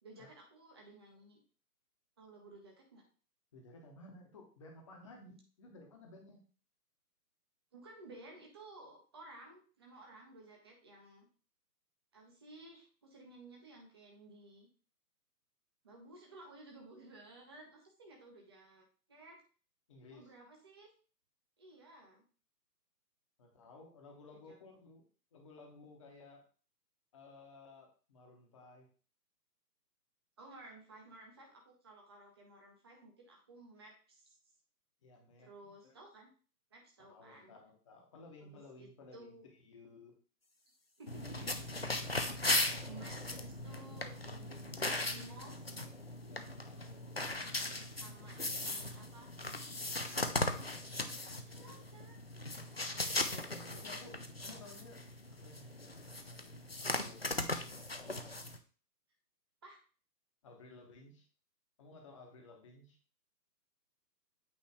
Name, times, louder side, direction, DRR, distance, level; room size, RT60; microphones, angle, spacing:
voice 1, 0.0-1.4 2.2-3.0 7.7-11.3 12.1-14.7 15.8-19.4 20.1-20.9 21.6-22.2 24.3-24.6 30.4-34.4 35.4-36.3 36.7-37.5 38.4-39.5 41.0-41.5 42.4-45.7 47.9-49.3 50.0-50.8 51.4-52.2 52.9-54.2 59.6-59.8, right 2 dB, 15° right, 0 dB, 0.7 m, -55 dB
voice 2, 3.5-6.4 19.9-20.3 23.4-25.1 25.3-26.4 27.1-28.9 35.0-36.0 37.0-40.1 42.5-43.0 46.0-47.2 51.2-52.2 53.3-55.0 55.4-57.4 58.0-58.3 60.4-61.3 61.8-63.0, left 2 dB, 20° left, 1 dB, 0.9 m, -57 dB
sound 1, 41.1-58.6, left 2 dB, 40° left, 0.4 m, -38 dB
8.6 x 3.0 x 4.6 m, 0.38 s
figure-of-eight pair, 135°, 50 cm